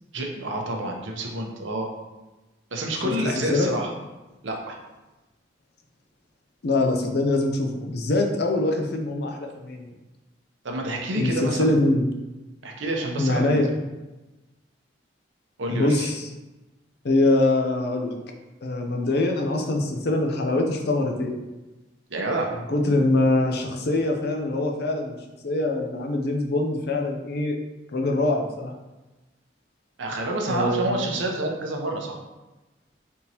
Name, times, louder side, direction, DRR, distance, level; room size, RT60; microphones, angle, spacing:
voice 1, 0.1-2.0 2.7-3.9 4.4-4.8 10.6-11.8 12.6-13.7 15.6-16.1 22.1-22.5 30.0-32.2, right 1 dB, 85° right, 1 dB, 0.8 m, -28 dB
voice 2, 6.6-9.9 11.1-12.0 13.2-13.7 15.7-16.3 17.0-18.1 18.6-21.3 22.7-25.2 25.4-27.5 27.9-28.7 30.4-31.0, left 2 dB, 60° left, 3 dB, 0.6 m, -23 dB
4.1 x 3.5 x 2.9 m, 1.1 s
head